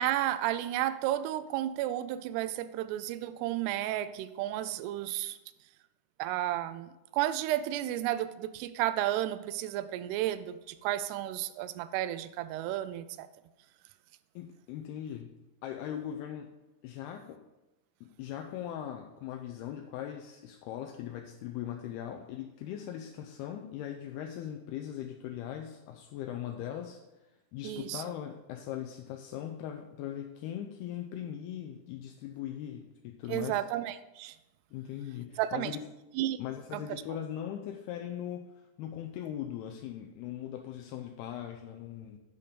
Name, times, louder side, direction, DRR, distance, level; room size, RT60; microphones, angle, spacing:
voice 1, 0.0-5.4 6.2-13.3 27.6-28.0 33.3-34.3 35.4-35.8 36.2-36.4 36.7-36.8, right 13 dB, 85° right, 12 dB, 2.5 m, -32 dB
voice 2, 14.4-15.4 15.6-16.5 16.8-17.4 18.2-27.0 27.5-33.6 34.7-35.8 36.4-42.2, left 10 dB, 80° left, 3 dB, 2.4 m, -40 dB
11.0 x 5.2 x 5.2 m, 1.0 s
omnidirectional pair, 4.8 m